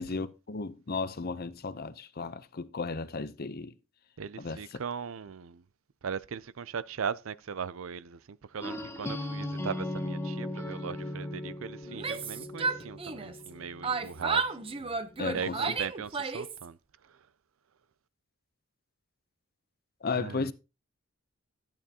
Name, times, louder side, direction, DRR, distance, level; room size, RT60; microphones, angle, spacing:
voice 1, 0.0-3.7 4.4-4.6 15.2-15.8 20.0-20.5, left 4 dB, 45° left, 0.7 m, -34 dB
voice 2, 4.2-5.6 6.0-14.5 14.8-15.0 15.3-16.8 20.2-20.5, right 6 dB, 70° right, 0.5 m, -38 dB
sound 1, 8.6-14.4, left 1 dB, 15° left, 1.4 m, -38 dB
Yell, 11.9-13.5 13.8-16.6, right 4 dB, 25° right, 0.7 m, -32 dB
13.5 x 8.8 x 2.9 m
head